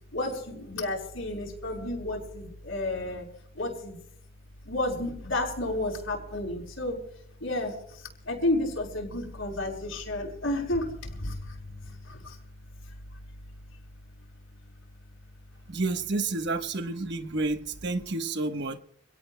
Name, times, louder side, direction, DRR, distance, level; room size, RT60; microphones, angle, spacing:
voice 1, 0.1-3.3 3.5-4.0 4.6-7.0 7.4-12.4, left 1 dB, 85° left, 6.5 m, -32 dB
voice 2, 15.7-18.8, right 3 dB, 55° right, 1.1 m, -30 dB
28.0 x 18.0 x 2.2 m
head